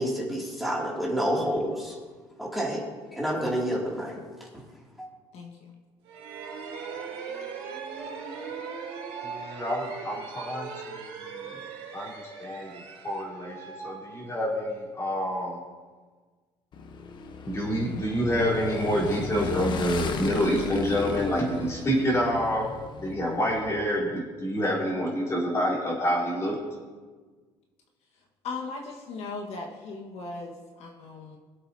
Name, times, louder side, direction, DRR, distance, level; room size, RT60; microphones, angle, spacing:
voice 1, 0.0-2.0 2.4-2.8 3.1-4.5 5.0-5.1, equal, ahead, -4 dB, 2.4 m, -29 dB
voice 2, 5.3-5.7 28.4-31.4, left 3 dB, 70° left, 0 dB, 1.4 m, -38 dB
sound 1, 6.0-14.7, right 5 dB, 80° right, 3.5 m, -39 dB
voice 3, 9.2-10.7 11.2-11.5 11.9-12.7 13.0-15.6 17.5-22.7 23.0-26.6, equal, 25° left, -5 dB, 3.6 m, -27 dB
Motorcycle / Engine, 16.7-23.8, left 4 dB, 40° left, 0.9 m, -36 dB
22.5 x 7.8 x 2.7 m, 1.4 s
cardioid pair, 135°, 11 cm